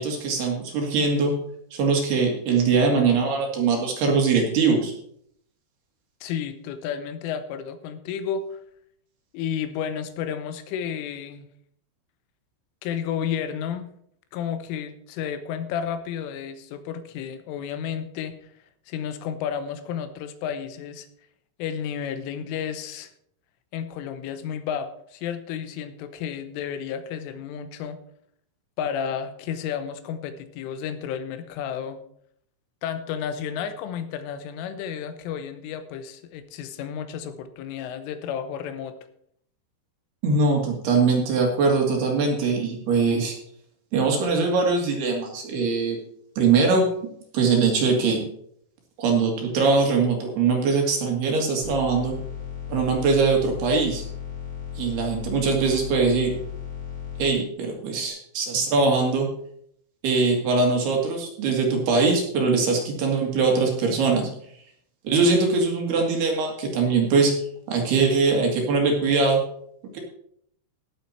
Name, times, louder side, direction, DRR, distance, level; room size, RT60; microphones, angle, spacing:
voice 1, 0.0-1.4 1.7-4.9 40.2-43.4 43.9-46.0 46.4-46.9 47.3-48.2 49.0-52.2 52.7-54.0 54.8-56.4 57.2-59.3 60.0-64.3 65.0-67.3 67.7-69.4 69.9-70.0, right 4 dB, 60° right, 1 dB, 3.7 m, -22 dB
voice 2, 6.2-8.6 9.3-11.5 12.8-13.9 14.3-18.4 18.9-21.1 21.6-23.1 23.7-28.0 28.8-32.0 32.8-39.0, left 8 dB, 85° left, 10 dB, 3.5 m, -32 dB
sound 1, 51.6-57.3, left 8 dB, 25° left, 3.5 m, -35 dB
17.5 x 7.5 x 4.3 m, 0.69 s
omnidirectional pair, 5.6 m